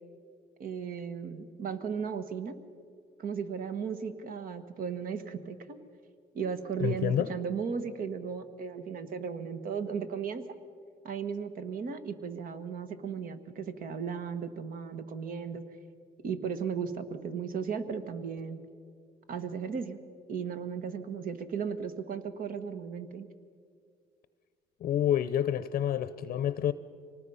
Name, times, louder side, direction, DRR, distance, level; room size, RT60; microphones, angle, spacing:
voice 1, 0.6-2.6 3.2-5.8 6.3-10.4 11.0-15.6 16.2-18.6 19.3-20.0 20.3-23.3, right 6 dB, 55° right, 1.4 m, -36 dB
voice 2, 6.8-7.3 24.8-26.7, left 10 dB, 55° left, 0.7 m, -28 dB
25.0 x 19.0 x 5.6 m
cardioid pair, 110°, 17 cm